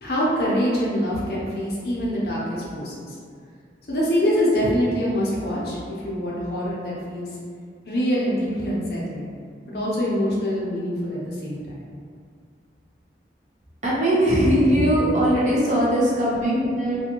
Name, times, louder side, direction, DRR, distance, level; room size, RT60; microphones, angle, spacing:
voice 1, 0.0-3.2 3.9-7.3 7.9-9.3 9.7-11.7, equal, 60° left, -6 dB, 0.7 m, -24 dB
voice 2, 13.8-17.0, equal, 40° right, -7 dB, 0.6 m, -20 dB
2.5 x 2.3 x 2.8 m, 2.1 s
head